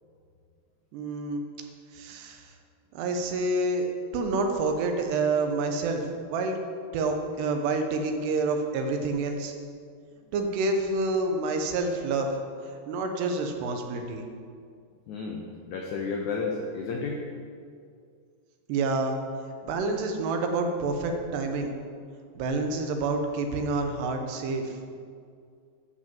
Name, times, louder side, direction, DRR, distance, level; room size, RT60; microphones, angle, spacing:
voice 1, 0.9-1.4 1.9-2.5 2.9-3.9 4.1-6.6 6.9-9.5 10.3-12.3 12.9-14.3 18.7-19.1 19.6-21.7 22.4-24.8, right 3 dB, 90° right, 4 dB, 3.1 m, -28 dB
voice 2, 15.1-17.2, left 4 dB, 90° left, 0 dB, 1.6 m, -32 dB
12.5 x 5.2 x 7.2 m, 2.2 s
omnidirectional pair, 4.7 m